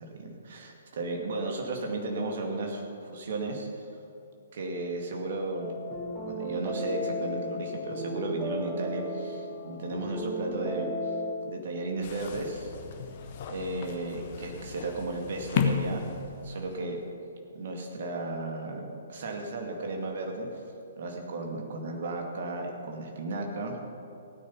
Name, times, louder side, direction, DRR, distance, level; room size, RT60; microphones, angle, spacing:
voice 1, 0.0-3.7 4.5-5.8 6.2-11.1 11.4-12.7 13.5-16.0 16.4-17.0 17.5-20.5 21.0-23.8, right 2 dB, 45° right, 2 dB, 2.3 m, -34 dB
sound 1, 5.6-11.3, equal, 5° right, 1.7 m, -34 dB
sound 2, 12.0-16.8, left 6 dB, 40° left, 1.2 m, -34 dB
16.5 x 9.6 x 5.7 m, 2.7 s
figure-of-eight pair, 125°, 0 cm